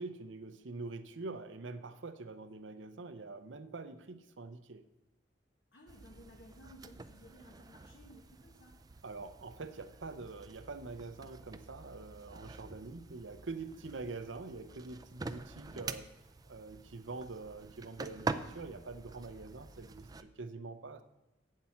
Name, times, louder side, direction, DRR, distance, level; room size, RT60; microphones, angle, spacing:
voice 1, 0.0-4.8 9.0-16.1 16.5-21.0, right 3 dB, 90° right, 11 dB, 0.8 m, -45 dB
voice 2, 5.7-8.8, equal, 70° left, -2 dB, 1.5 m, -57 dB
sound 1, 5.9-20.2, right 3 dB, 20° right, 0.4 m, -46 dB
8.8 x 7.5 x 5.8 m, 1.1 s
head